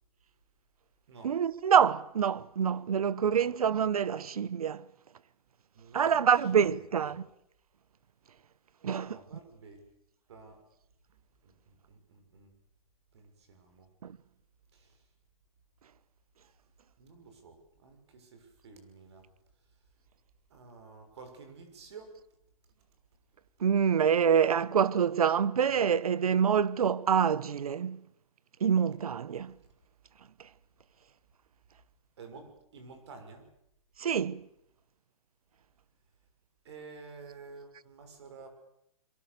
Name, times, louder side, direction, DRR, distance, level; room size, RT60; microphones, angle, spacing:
voice 1, 1.2-4.9 5.9-7.3 8.8-9.2 14.0-14.2 23.6-28.0 28.6-29.5 34.0-34.4, right 7 dB, 80° right, 1.1 m, -26 dB
voice 2, 5.7-6.3 7.0-7.2 8.9-9.8 10.3-10.6 11.4-12.5 13.1-13.9 14.7-14.9 17.0-19.2 20.5-22.1 32.2-33.4 36.6-38.5, right 4 dB, 50° right, 6.2 m, -51 dB
27.5 x 23.0 x 6.9 m
hypercardioid pair, 175°, 19 cm